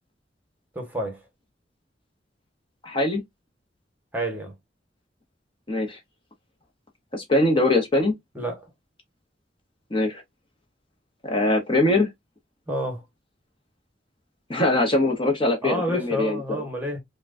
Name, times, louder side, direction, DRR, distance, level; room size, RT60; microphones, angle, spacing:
voice 1, 0.7-1.2 4.1-4.5 8.3-8.7 12.7-13.0 15.6-17.0, equal, 10° right, 1.1 m, -29 dB
voice 2, 2.8-3.2 5.7-6.0 7.1-8.1 9.9-10.2 11.2-12.1 14.5-16.6, left 2 dB, 30° left, 0.8 m, -22 dB
5.8 x 2.2 x 2.5 m
head